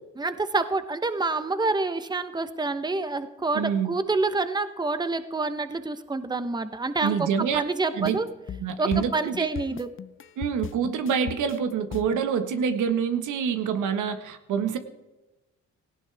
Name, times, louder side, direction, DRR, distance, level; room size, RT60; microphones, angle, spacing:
voice 1, 0.2-8.3 8.8-9.9, right 3 dB, 15° right, 10 dB, 1.0 m, -27 dB
voice 2, 3.5-3.9 7.0-7.6 7.9-8.2 8.6-9.5 10.4-14.8, right 7 dB, 80° right, 8 dB, 1.6 m, -26 dB
sound 1, 8.0-12.3, left 8 dB, 45° left, 0.6 m, -38 dB
18.0 x 16.5 x 3.5 m, 1.1 s
cardioid pair, 90°, 30 cm